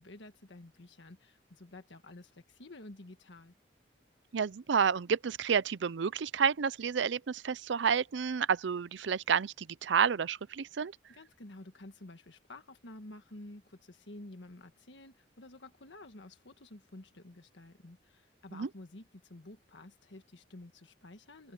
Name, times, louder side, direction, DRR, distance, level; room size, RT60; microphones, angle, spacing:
voice 1, 0.0-3.5 11.1-21.5, left 2 dB, 80° left, 1.5 m, -51 dB
voice 2, 4.3-10.9 18.5-18.7, right 6 dB, 80° right, 0.5 m, -30 dB
open air
head